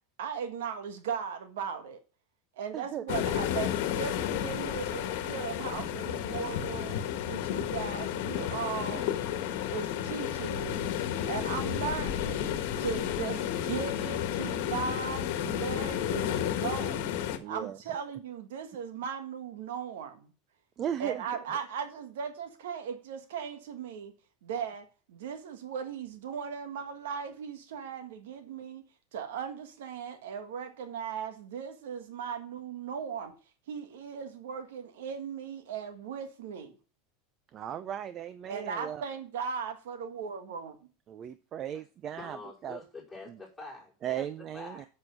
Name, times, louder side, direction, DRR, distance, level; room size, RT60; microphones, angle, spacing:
voice 1, 0.2-2.0 2.5-7.0 7.3-9.1 9.7-10.9 11.3-12.4 12.8-17.1 17.4-20.3 21.0-24.1 24.4-28.8 29.1-33.3 33.7-36.7 38.5-40.7, right 7 dB, 90° right, 1.5 m, -37 dB
voice 2, 2.7-3.0 17.4-17.8 20.8-21.2 37.5-39.0 41.1-42.8 43.3-43.4 44.0-44.8, right 10 dB, 35° right, 0.5 m, -37 dB
sound 1, 3.1-17.4, left 10 dB, 65° left, 1.3 m, -32 dB
voice 3, 42.2-44.2 44.5-44.8, left 3 dB, 5° left, 4.6 m, -45 dB
7.5 x 6.3 x 5.8 m
supercardioid pair, 145°, 0 cm